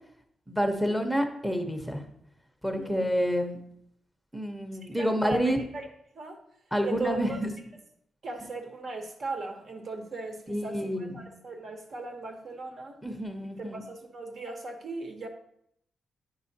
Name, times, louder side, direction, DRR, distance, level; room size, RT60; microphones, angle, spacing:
voice 1, 0.5-2.0 2.6-3.6 4.3-5.6 6.7-7.5 10.5-11.3 13.0-13.9, equal, ahead, 5 dB, 0.8 m, -28 dB
voice 2, 2.7-3.1 5.0-5.9 6.1-6.4 6.8-7.4 8.2-13.0 13.6-15.3, right 3 dB, 50° right, 3 dB, 1.0 m, -38 dB
9.2 x 5.6 x 2.8 m, 0.70 s
wide cardioid pair, 145°, 0 cm